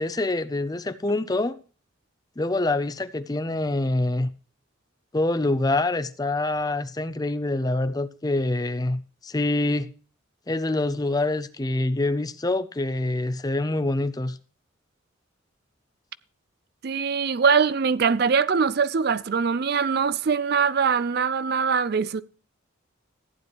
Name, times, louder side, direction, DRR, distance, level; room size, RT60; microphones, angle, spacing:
voice 1, 0.0-1.6 2.4-4.3 5.1-9.9 10.5-14.4, left 2 dB, 20° left, 0.5 m, -25 dB
voice 2, 16.8-22.2, right 6 dB, 50° right, 0.4 m, -22 dB
15.0 x 9.6 x 3.0 m
head